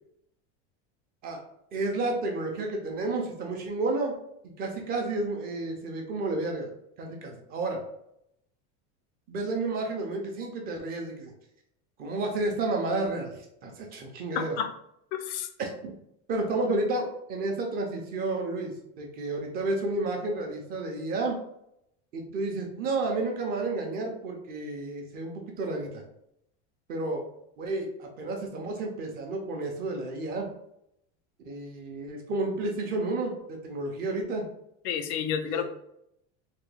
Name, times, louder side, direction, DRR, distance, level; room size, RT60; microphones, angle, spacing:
voice 1, 1.7-4.1 4.4-6.7 7.0-7.8 9.3-11.3 12.0-13.3 13.6-14.6 15.6-15.9 16.3-21.4 22.1-25.9 26.9-27.2 27.6-30.5 31.4-34.5 35.4-35.6, right 2 dB, 30° right, 1 dB, 0.4 m, -31 dB
voice 2, 14.4-14.7 15.1-15.5 34.8-35.6, left 8 dB, 85° left, 9 dB, 0.5 m, -30 dB
3.4 x 2.2 x 3.2 m, 0.78 s
cardioid pair, 170°, 33 cm